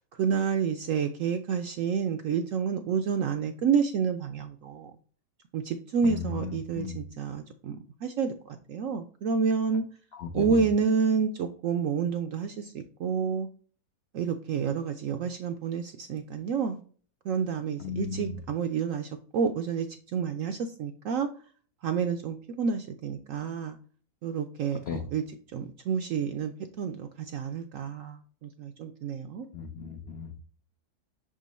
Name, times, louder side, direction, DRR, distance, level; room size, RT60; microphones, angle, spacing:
voice 1, 0.2-4.9 5.5-9.8 10.3-13.5 14.1-16.8 17.3-19.9 20.1-21.3 21.8-23.8 24.2-25.2 25.5-29.5, right 6 dB, 70° right, 7 dB, 0.7 m, -29 dB
voice 2, 6.0-7.0 10.2-10.6 17.8-18.4 24.9-25.0 29.5-30.4, left 5 dB, 70° left, 5 dB, 0.6 m, -35 dB
6.2 x 3.8 x 4.1 m, 0.43 s
omnidirectional pair, 1.8 m